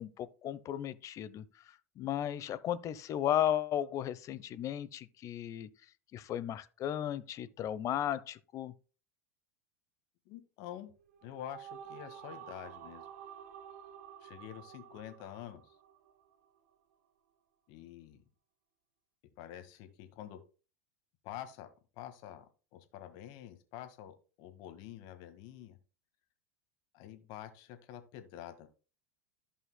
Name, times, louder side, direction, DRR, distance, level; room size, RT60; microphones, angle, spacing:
voice 1, 0.0-5.7 6.1-8.7, left 11 dB, 40° left, 0.8 m, -35 dB
voice 2, 10.3-10.9 11.2-13.1 14.2-15.8 17.7-18.2 19.4-20.4 21.2-21.7 22.0-22.4 22.7-25.8 26.9-28.7, left 11 dB, 55° left, 1.7 m, -47 dB
sound 1, 10.9-16.4, right 9 dB, 70° right, 0.9 m, -50 dB
14.5 x 5.6 x 2.2 m
hypercardioid pair, 90°, 8 cm